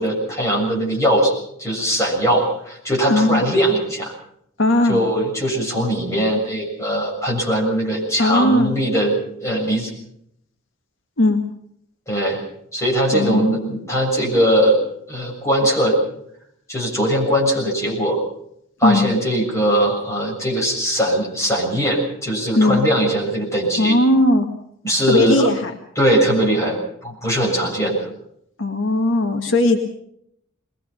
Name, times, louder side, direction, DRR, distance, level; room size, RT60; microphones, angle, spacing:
voice 1, 0.0-4.1 4.9-9.1 9.4-9.9 12.1-12.4 12.7-14.8 15.1-16.0 16.7-18.2 18.8-24.0 24.8-25.5 26.0-28.1, right 1 dB, 15° left, -2 dB, 7.1 m, -20 dB
voice 2, 3.1-3.4 4.6-5.0 8.2-8.8 11.2-11.4 13.1-13.5 18.8-19.1 22.6-22.8 23.8-24.5 25.1-25.7 26.2-26.6 28.6-29.9, left 2 dB, 65° left, 3 dB, 1.9 m, -18 dB
22.5 x 20.5 x 5.8 m, 0.71 s
head